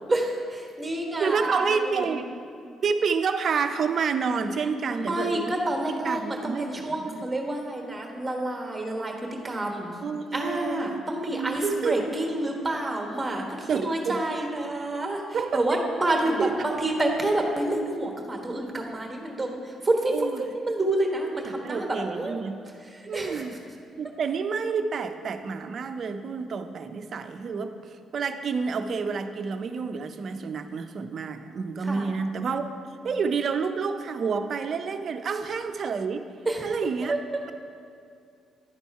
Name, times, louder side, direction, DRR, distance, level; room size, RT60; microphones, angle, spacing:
voice 1, 0.1-2.2 4.8-10.0 10.3-15.2 15.5-22.4 22.8-23.4 31.8-32.1 36.4-36.7 37.0-37.4, right 1 dB, 15° right, 1 dB, 1.3 m, -28 dB
voice 2, 1.2-2.2 2.8-5.5 6.0-7.2 10.0-11.0 11.3-12.0 13.7-14.2 15.3-15.8 16.4-16.5 20.1-20.4 21.4-22.6 23.1-23.5 24.0-32.6 33.0-36.3 36.6-37.1, right 5 dB, 55° right, 8 dB, 0.5 m, -29 dB
10.5 x 4.1 x 4.6 m, 2.3 s
cardioid pair, 90°, 0 cm